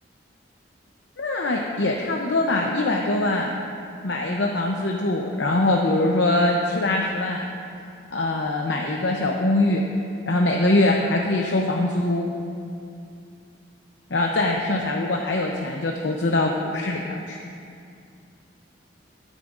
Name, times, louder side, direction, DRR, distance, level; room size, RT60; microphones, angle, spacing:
voice 1, 1.2-3.5 4.0-7.5 8.1-9.8 10.3-12.3 14.1-17.4, left 2 dB, 80° left, 0 dB, 0.8 m, -23 dB
19.5 x 9.8 x 2.6 m, 2.5 s
head